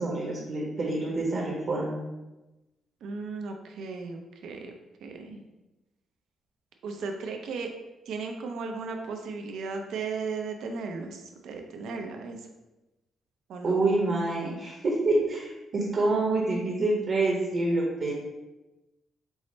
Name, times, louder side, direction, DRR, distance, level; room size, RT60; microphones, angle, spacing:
voice 1, 0.0-2.0 13.6-18.1, right 2 dB, 50° right, -3 dB, 0.8 m, -27 dB
voice 2, 3.0-4.7 5.0-5.4 6.8-7.7 8.1-12.4 13.5-13.8, right 4 dB, 80° right, 4 dB, 0.5 m, -36 dB
4.8 x 2.0 x 4.1 m, 1.0 s
cardioid pair, 110°, 0 cm